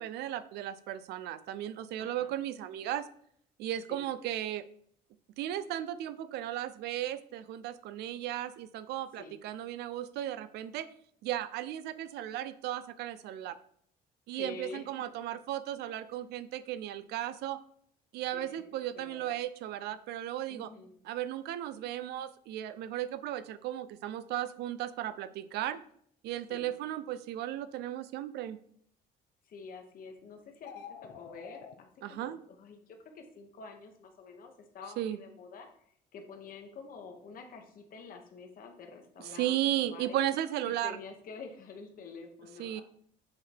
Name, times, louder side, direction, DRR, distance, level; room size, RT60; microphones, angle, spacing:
voice 1, 0.0-3.1 3.6-4.6 5.4-10.9 11.2-13.6 14.3-17.6 18.1-20.7 21.0-25.8 26.2-28.6 32.0-32.4 35.0-35.2 39.3-41.0 42.6-42.8, right 12 dB, 80° right, 14 dB, 0.5 m, -35 dB
voice 2, 2.0-2.4 3.9-4.1 9.2-9.4 14.3-14.8 18.3-18.6 18.9-19.3 20.5-20.9 26.5-26.7 29.4-35.7 36.1-40.3 40.6-42.8, left 4 dB, 55° left, 4 dB, 1.4 m, -48 dB
sound 1, 30.5-31.7, left 8 dB, 80° left, 0.8 m, -47 dB
7.6 x 3.9 x 4.4 m, 0.65 s
cardioid pair, 110°, 17 cm